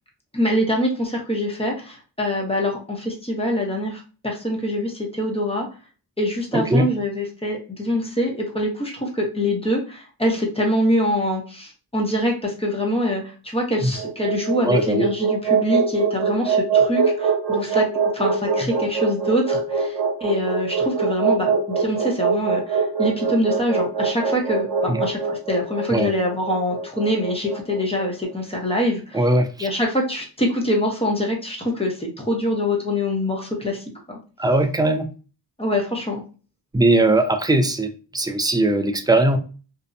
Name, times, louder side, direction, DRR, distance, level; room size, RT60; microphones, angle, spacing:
voice 1, 0.3-5.7 6.2-17.9 18.1-29.2 29.6-34.2 35.6-36.2, left 1 dB, 15° left, -1 dB, 0.8 m, -24 dB
voice 2, 6.5-6.9 13.8-13.9 14.6-15.1 24.9-25.0 25.9-26.1 29.1-29.7 34.4-35.1 36.7-39.4, right 2 dB, 10° right, 7 dB, 0.3 m, -19 dB
sound 1, 13.8-28.1, right 5 dB, 75° right, 0.8 m, -23 dB
2.6 x 2.1 x 2.4 m, 0.36 s
cardioid pair, 60°, 42 cm